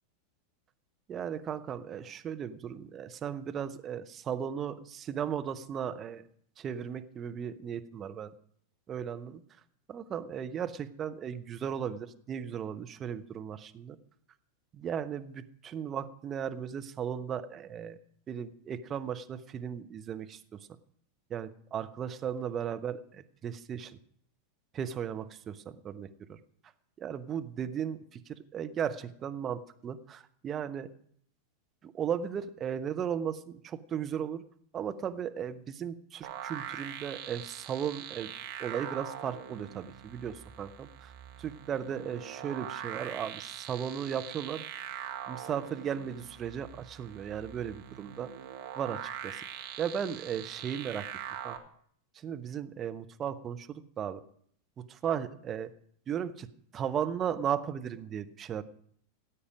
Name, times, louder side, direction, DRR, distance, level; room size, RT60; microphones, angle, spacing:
voice 1, 1.1-6.2 6.6-8.3 8.9-9.4 9.9-14.0 14.7-18.0 18.3-20.6 21.3-24.0 24.7-26.4 27.0-30.9 31.8-34.4 34.7-38.3 38.6-41.1 41.4-44.7 45.3-48.3 48.8-49.3 49.8-51.1 51.4-51.6 52.1-54.2 54.8-55.7 56.1-56.5 56.7-58.6, right 8 dB, 25° right, 8 dB, 0.9 m, -36 dB
sound 1, 36.2-51.6, right 10 dB, 50° right, 1.6 m, -42 dB
18.0 x 8.6 x 5.1 m, 0.64 s
figure-of-eight pair, 90°, 0 cm